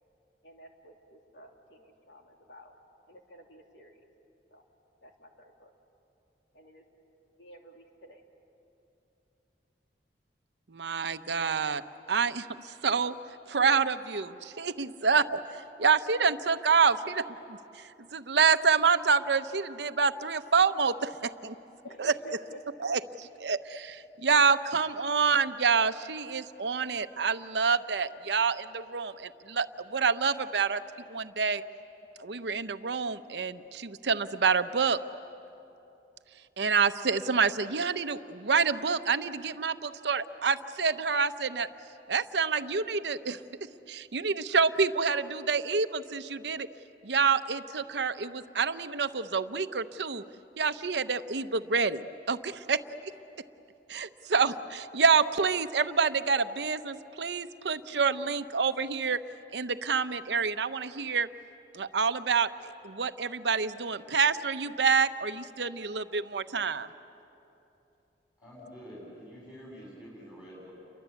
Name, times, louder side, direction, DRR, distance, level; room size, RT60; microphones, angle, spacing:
voice 1, 0.4-2.7 3.1-4.0 4.5-4.6 5.0-5.7 6.5-6.8 7.4-8.2 21.8-22.8, equal, 75° left, 2 dB, 2.9 m, -52 dB
voice 2, 10.7-11.8 12.1-13.2 13.5-15.4 15.8-17.6 18.1-21.5 22.0-22.1 22.8-30.8 31.1-31.6 32.2-35.0 36.6-41.7 42.1-43.4 43.9-46.7 47.0-50.2 50.6-52.0 52.3-52.8 53.9-59.2 59.5-61.3 61.7-66.9, right 5 dB, 70° right, 11 dB, 0.8 m, -27 dB
voice 3, 68.4-70.7, equal, 25° left, -6 dB, 6.9 m, -47 dB
29.5 x 23.5 x 8.3 m, 2.9 s
head